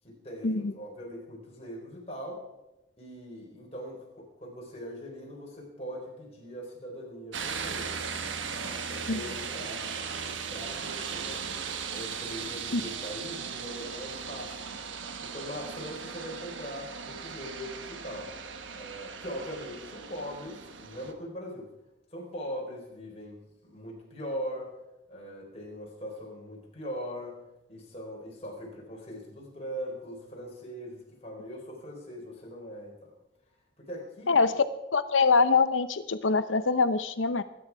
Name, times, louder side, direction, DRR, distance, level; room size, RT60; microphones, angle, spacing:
voice 1, 0.0-2.4 3.0-7.9 8.5-11.4 11.9-14.6 15.2-18.3 18.8-21.7 22.1-24.7 25.1-27.4 27.7-33.1 33.8-34.4, equal, 30° left, -2 dB, 4.5 m, -41 dB
sound 1, 7.3-21.1, right 6 dB, 80° right, 1.2 m, -37 dB
voice 2, 34.3-34.6 34.9-37.4, left 4 dB, 85° left, 13 dB, 0.8 m, -24 dB
21.5 x 9.7 x 4.8 m, 0.97 s
head